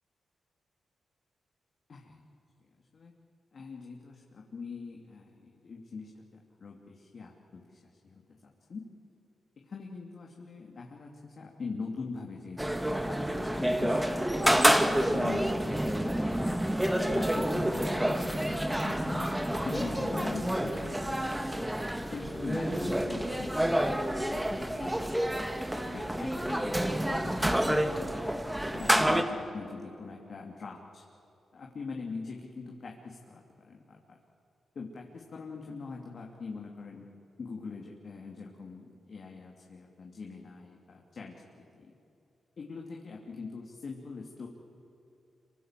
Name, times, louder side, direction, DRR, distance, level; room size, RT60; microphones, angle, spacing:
voice 1, 1.9-2.2 2.9-3.1 3.5-6.2 6.6-8.9 9.6-16.6 17.2-19.4 19.6-21.7 22.1-25.2 25.8-28.2 28.7-31.0 31.5-34.2 34.7-37.1 37.4-41.9 42.6-44.5, left 4 dB, 60° left, 0 dB, 2.8 m, -43 dB
sound 1, 12.6-29.2, right 1 dB, 10° right, 2.1 m, -28 dB
26.5 x 25.0 x 7.6 m, 2.8 s
cardioid pair, 55°, 0 cm